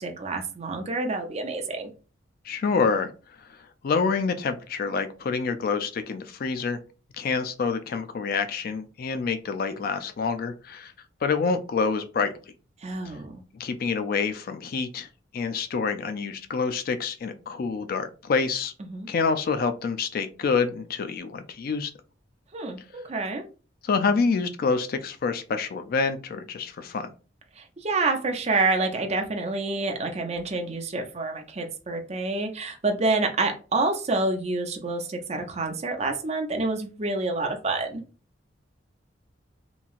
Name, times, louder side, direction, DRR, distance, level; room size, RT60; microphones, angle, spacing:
voice 1, 0.0-1.9 12.8-13.4 18.9-19.1 22.5-23.4 27.6-38.0, right 3 dB, 35° right, 3 dB, 0.5 m, -28 dB
voice 2, 2.4-3.1 3.8-6.8 7.2-10.9 11.2-12.3 13.5-15.1 15.3-18.7 19.1-21.9 23.8-27.1, left 5 dB, 50° left, 9 dB, 0.3 m, -27 dB
3.0 x 2.7 x 2.4 m, 0.35 s
head